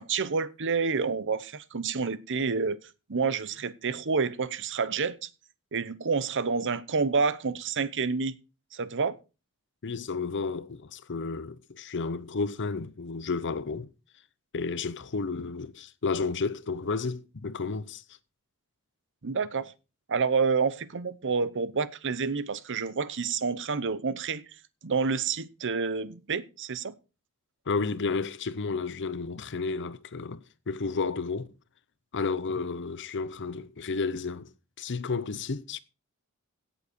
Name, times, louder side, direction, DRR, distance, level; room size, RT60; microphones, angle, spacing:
voice 1, 0.0-2.8 3.1-5.3 5.7-8.4 8.7-9.2 19.2-19.7 20.1-24.4 24.8-26.9, right 5 dB, 55° right, 0.8 m, -28 dB
voice 2, 9.8-13.9 14.5-18.0 27.7-31.5 32.1-34.5 34.8-35.8, left 4 dB, 55° left, 0.8 m, -32 dB
16.5 x 7.3 x 4.4 m
head